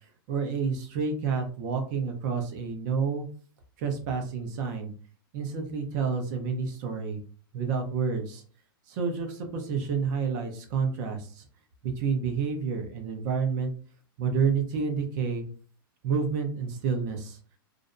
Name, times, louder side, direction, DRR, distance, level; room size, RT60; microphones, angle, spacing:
voice 1, 0.3-3.2 3.8-4.9 5.3-7.2 7.5-8.4 8.9-11.4 11.8-13.7 14.2-15.4 16.0-17.4, right 5 dB, 50° right, 4 dB, 0.7 m, -29 dB
2.5 x 2.0 x 2.6 m, 0.42 s
hypercardioid pair, 120°, 12 cm